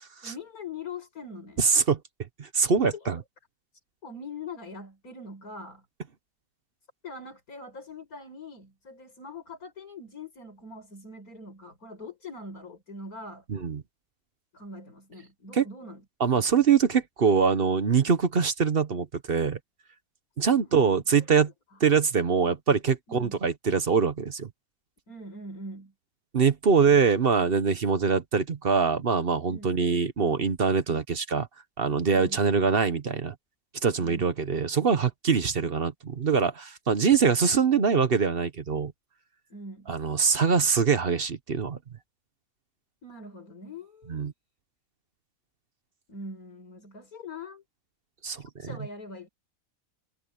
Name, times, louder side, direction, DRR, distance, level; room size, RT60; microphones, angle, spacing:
voice 1, 0.2-1.7 2.9-3.1 4.0-5.9 7.0-13.4 14.5-16.0 16.3-16.5 20.5-21.3 23.1-23.4 25.1-25.9 29.5-29.9 32.1-32.5 34.0-34.3 39.5-39.9 43.0-44.2 46.1-47.6 48.6-49.3, left 2 dB, 90° left, 5.5 m, -42 dB
voice 2, 1.6-2.0 2.4-3.2 13.5-13.8 15.5-15.6 16.2-19.6 20.4-21.5 21.8-24.5 26.3-31.5 31.8-33.3 33.8-38.9 39.9-41.8 44.1-44.3 48.2-48.4, right 6 dB, 45° right, 1.1 m, -23 dB
omnidirectional pair, 1.5 m